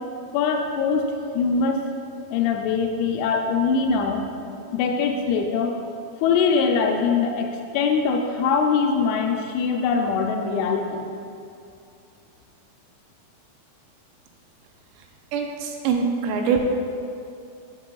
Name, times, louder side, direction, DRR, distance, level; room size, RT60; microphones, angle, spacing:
voice 1, 0.3-1.1 1.3-1.8 2.3-4.3 4.7-5.7 6.2-11.0, left 5 dB, 85° left, 2 dB, 2.5 m, -22 dB
voice 2, 15.3-16.6, right 6 dB, 90° right, 2 dB, 2.8 m, -23 dB
8.6 x 6.7 x 2.3 m, 2.5 s
omnidirectional pair, 4.8 m